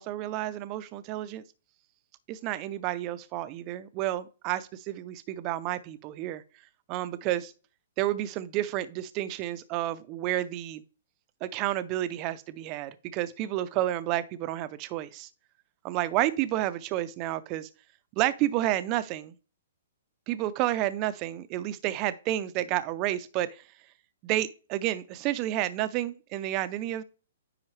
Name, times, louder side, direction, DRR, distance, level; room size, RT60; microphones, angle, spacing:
voice 1, 0.0-1.4 2.3-6.4 6.9-7.5 8.0-10.8 11.4-15.3 15.8-17.7 18.2-19.3 20.3-23.6 24.2-27.0, right 14 dB, 30° right, 0.5 m, -30 dB
9.7 x 3.9 x 3.2 m
hypercardioid pair, 155°, 0 cm